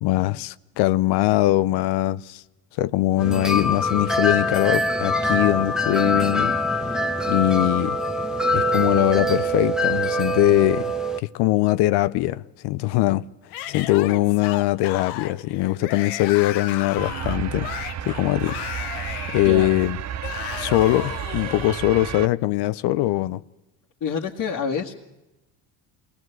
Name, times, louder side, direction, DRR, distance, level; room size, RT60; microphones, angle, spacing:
voice 1, 0.0-2.4 2.8-6.5 7.3-8.0 8.5-10.9 11.2-13.2 13.7-17.7 18.0-18.6 19.3-20.0 20.6-23.4, left 17 dB, 70° left, 0.7 m, -21 dB
sound 1, 3.2-11.2, left 1 dB, ahead, 1.1 m, -23 dB
Yell / Screaming, 13.5-21.8, left 12 dB, 85° left, 1.2 m, -34 dB
sound 2, 17.0-22.3, right 10 dB, 40° right, 0.8 m, -32 dB
voice 2, 24.0-24.9, left 6 dB, 45° left, 1.9 m, -27 dB
23.5 x 18.0 x 7.8 m
supercardioid pair, 90°, 41 cm